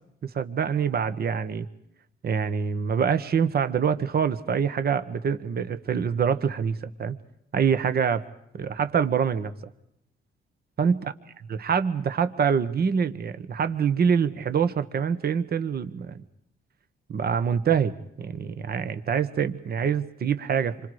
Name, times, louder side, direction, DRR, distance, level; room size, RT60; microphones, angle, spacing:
voice 1, 0.3-1.6 2.2-7.1 7.5-8.2 8.5-9.5 10.8-11.1 11.5-16.2 17.1-20.7, right 7 dB, 50° right, 11 dB, 1.5 m, -25 dB
28.0 x 25.5 x 5.0 m, 0.78 s
cardioid pair, 90°, 20 cm